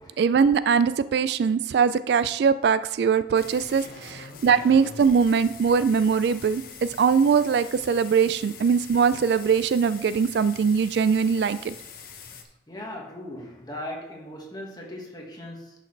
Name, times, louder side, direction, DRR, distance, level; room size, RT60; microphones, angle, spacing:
voice 1, 0.2-11.8, right 6 dB, 60° right, 14 dB, 0.3 m, -22 dB
sound 1, 3.4-12.4, left 5 dB, 50° left, 1.0 m, -44 dB
voice 2, 12.7-15.7, left 1 dB, 20° left, 0 dB, 1.7 m, -38 dB
10.5 x 6.4 x 3.3 m, 0.84 s
head